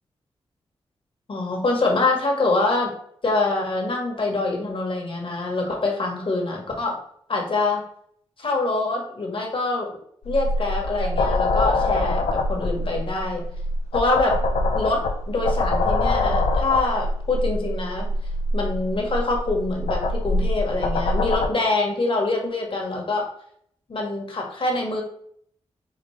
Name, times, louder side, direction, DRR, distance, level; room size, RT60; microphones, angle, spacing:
voice 1, 1.3-2.9 3.2-7.0 7.3-7.8 8.4-9.9 10.2-12.2 12.5-13.4 13.9-14.4 14.7-18.1 18.5-23.3 23.9-25.0, left 2 dB, 55° left, 0 dB, 1.4 m, -25 dB
sound 1, 10.2-21.5, left 2 dB, 90° left, 0.5 m, -24 dB
5.1 x 2.4 x 3.1 m, 0.65 s
cardioid pair, 55°, 11 cm